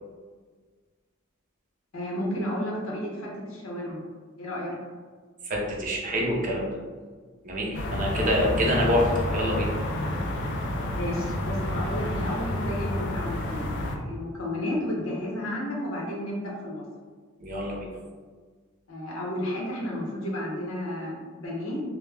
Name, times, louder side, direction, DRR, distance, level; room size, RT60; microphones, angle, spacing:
voice 1, 1.9-4.0 4.4-4.8 8.1-8.3 10.9-16.8 18.9-21.8, left 1 dB, 80° left, -3 dB, 0.7 m, -32 dB
voice 2, 5.4-6.8 7.4-9.7 17.4-17.9, equal, 40° right, -2 dB, 0.5 m, -26 dB
sound 1, 7.7-14.0, left 1 dB, 60° left, 0.4 m, -29 dB
2.2 x 2.1 x 3.2 m, 1.5 s
head